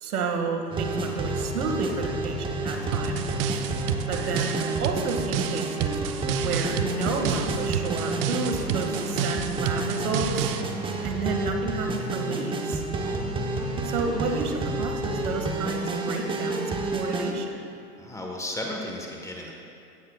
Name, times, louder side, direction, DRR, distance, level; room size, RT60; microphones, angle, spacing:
voice 1, 0.0-3.3 4.1-5.9 6.4-10.5 11.0-12.8 13.8-17.7, right 4 dB, 70° right, 3 dB, 2.0 m, -31 dB
sound 1, 0.7-17.3, right 2 dB, 10° right, 0.9 m, -30 dB
sound 2, 2.9-10.6, right 9 dB, 40° right, 0.6 m, -31 dB
voice 2, 13.0-13.4 18.0-19.5, left 1 dB, 5° left, 0 dB, 1.3 m, -35 dB
16.5 x 15.5 x 2.4 m, 2.6 s
hypercardioid pair, 115°, 46 cm